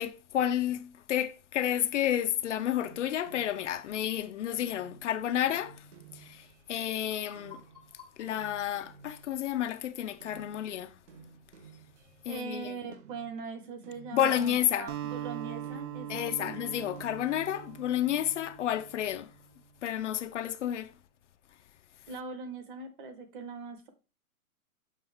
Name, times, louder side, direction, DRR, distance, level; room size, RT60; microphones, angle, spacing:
voice 1, 0.0-5.9 6.1-7.6 8.2-10.9 12.2-12.8 14.1-14.9 16.1-19.3 19.8-20.9, left 11 dB, 55° left, 0.5 m, -31 dB
sound 1, 2.8-9.9 10.2-12.5 12.9-15.2 15.6-17.7, right 6 dB, 55° right, 1.0 m, -56 dB
sound 2, 7.0-10.0, left 6 dB, ahead, 0.4 m, -55 dB
voice 2, 12.3-16.6 22.1-23.9, right 5 dB, 35° right, 1.2 m, -41 dB
Acoustic guitar, 14.9-19.4, right 10 dB, 75° right, 0.9 m, -41 dB
7.2 x 5.1 x 3.4 m
hypercardioid pair, 160°, 44 cm